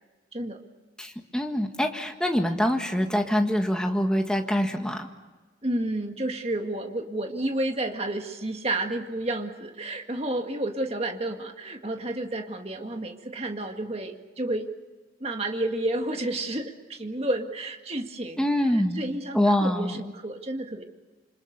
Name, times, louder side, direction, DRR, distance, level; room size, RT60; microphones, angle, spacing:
voice 1, 1.0-5.1 18.4-19.0 19.3-20.0, equal, 5° left, 3 dB, 1.8 m, -25 dB
voice 2, 5.6-14.7 15.2-18.5 18.7-20.8, right 1 dB, 30° right, 4 dB, 1.9 m, -31 dB
27.5 x 25.5 x 6.8 m, 1.3 s
head